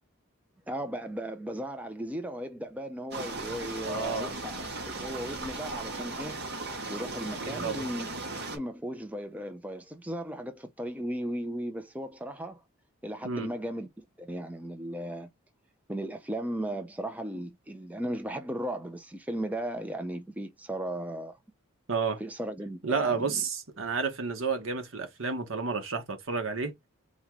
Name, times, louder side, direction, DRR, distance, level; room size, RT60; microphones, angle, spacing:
voice 1, 0.7-6.5 6.9-8.1 8.4-12.6 13.0-15.3 15.9-21.4 22.2-23.4, right 1 dB, 5° right, 0.5 m, -36 dB
sound 1, 3.1-8.6, right 2 dB, 50° right, 1.8 m, -37 dB
voice 2, 3.8-4.3 7.4-7.9 13.2-13.5 21.9-22.2 22.8-26.7, right 5 dB, 70° right, 1.3 m, -31 dB
4.1 x 3.1 x 3.6 m
head